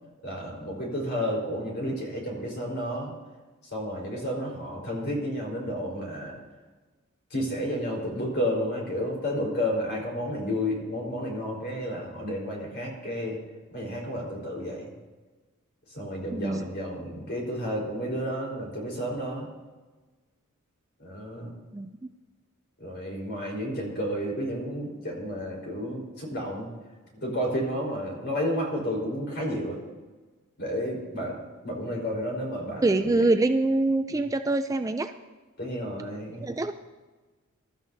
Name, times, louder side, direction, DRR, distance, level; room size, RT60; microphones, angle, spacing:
voice 1, 0.2-3.1 3.6-6.4 7.3-13.4 13.7-14.9 15.9-19.5 21.0-21.5 22.8-26.7 27.1-29.8 30.6-31.4 31.6-33.2 35.6-36.5, equal, 50° left, -2 dB, 4.4 m, -31 dB
voice 2, 16.3-16.7 21.7-22.0 32.8-35.1 36.3-36.7, right 2 dB, 15° right, 8 dB, 0.4 m, -25 dB
21.5 x 13.0 x 2.8 m, 1.3 s
head